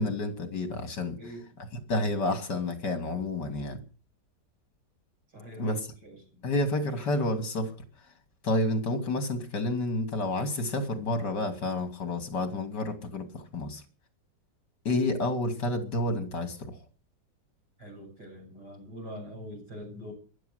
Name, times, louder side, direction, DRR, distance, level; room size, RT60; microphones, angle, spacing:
voice 1, 0.0-1.2 1.6-3.8 5.6-5.8 6.4-7.7 8.4-13.8 14.8-16.8, left 2 dB, 70° left, 7 dB, 3.4 m, -30 dB
voice 2, 5.3-6.5 17.8-20.1, equal, 65° right, 2 dB, 8.3 m, -43 dB
15.0 x 11.5 x 8.2 m, 0.39 s
omnidirectional pair, 2.0 m